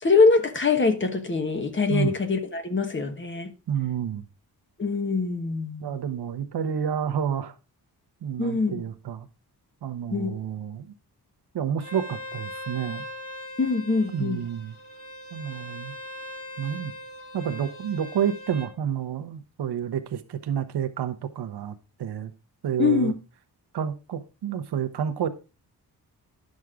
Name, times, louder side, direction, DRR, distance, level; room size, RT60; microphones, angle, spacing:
voice 1, 0.0-3.5 4.8-6.0 8.4-8.8 10.1-10.3 13.6-14.4 22.8-23.1, left 4 dB, 30° left, 1.3 m, -23 dB
voice 2, 3.7-4.2 5.8-7.5 8.2-9.3 9.8-10.9 11.5-13.0 14.1-14.8 15.3-15.9 16.6-16.9 17.3-22.3 22.6-23.1 23.7-25.3, right 8 dB, 90° right, 1.0 m, -29 dB
Bowed string instrument, 11.8-18.7, left 1 dB, 50° left, 2.3 m, -40 dB
11.0 x 6.4 x 3.6 m
wide cardioid pair, 135°, 38 cm